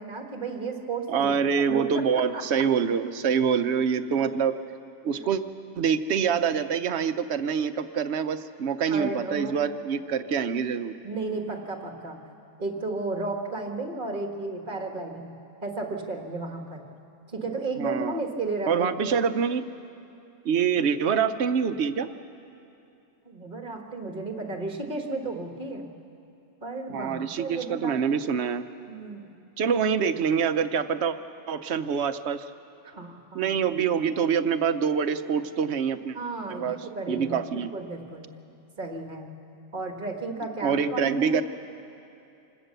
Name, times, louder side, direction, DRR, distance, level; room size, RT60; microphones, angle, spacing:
voice 1, 0.0-2.6 5.1-5.2 8.9-9.7 11.0-12.2 12.6-15.3 15.6-16.8 17.3-19.2 23.2-25.9 26.6-28.3 28.9-29.3 32.8-33.5 36.1-38.2 38.8-39.3 39.7-41.4, right 3 dB, 45° right, 3 dB, 1.8 m, -33 dB
voice 2, 1.1-4.5 5.0-5.4 5.8-10.9 17.8-18.2 18.7-19.6 20.4-22.1 26.9-28.6 29.6-31.2 31.5-32.4 33.3-36.2 36.5-36.8 37.1-37.7 40.6-41.4, right 7 dB, 70° right, 11 dB, 1.0 m, -25 dB
26.5 x 17.0 x 6.7 m, 2.7 s
omnidirectional pair, 1.2 m